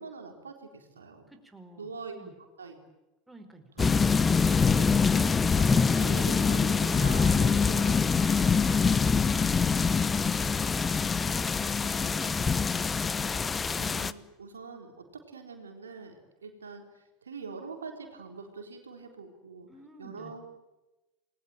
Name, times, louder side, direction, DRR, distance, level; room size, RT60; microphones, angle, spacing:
voice 1, 0.0-1.3 1.8-2.2 2.6-2.8 3.8-4.1 4.4-8.1 11.5-12.1 13.8-19.7 20.0-20.5, right 4 dB, 80° right, 4 dB, 4.0 m, -44 dB
voice 2, 1.3-1.9 2.2-2.3 3.3-3.8 6.3-6.5 8.4-11.2 11.9-13.2 19.7-20.3, right 2 dB, 5° right, 5 dB, 4.6 m, -50 dB
sound 1, 3.8-14.1, left 5 dB, 20° left, 1.0 m, -24 dB
28.5 x 21.5 x 9.1 m, 1.0 s
figure-of-eight pair, 75°, 0 cm